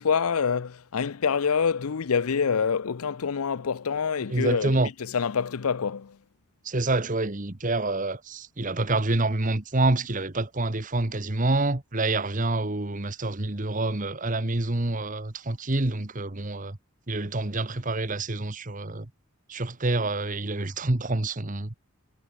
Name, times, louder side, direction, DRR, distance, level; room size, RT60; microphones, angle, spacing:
voice 1, 0.0-6.2, left 6 dB, 80° left, 0.6 m, -26 dB
voice 2, 4.3-4.9 6.6-16.8 17.1-19.1 19.5-21.7, right 2 dB, 35° right, 1.3 m, -27 dB
head